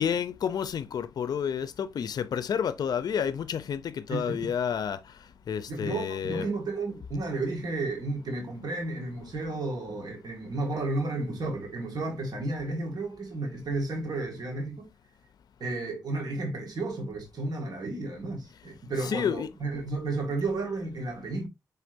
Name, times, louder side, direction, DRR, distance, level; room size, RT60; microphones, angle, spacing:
voice 1, 0.0-5.0 5.5-6.5 19.0-19.5, left 8 dB, 80° left, 0.4 m, -30 dB
voice 2, 4.1-4.5 5.7-14.9 15.6-21.5, right 2 dB, 75° right, 1.7 m, -32 dB
4.4 x 3.3 x 2.5 m
cardioid pair, 60°, 7 cm